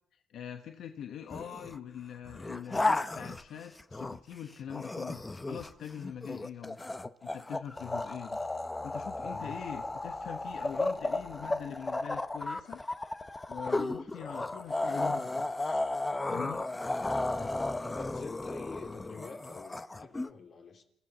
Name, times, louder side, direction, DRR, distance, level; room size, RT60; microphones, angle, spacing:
voice 1, 0.1-5.2 5.5-6.8 7.2-8.4 8.8-12.8 13.5-15.8 16.3-16.6, left 9 dB, 70° left, 1.2 m, -43 dB
sound 1, 1.3-1.8 2.3-4.3 4.7-20.3, left 2 dB, 15° left, 0.9 m, -34 dB
voice 2, 9.2-9.6 17.3-20.8, left 5 dB, 55° left, 3.3 m, -47 dB
28.5 x 15.5 x 6.2 m
cardioid pair, 90°, 0 cm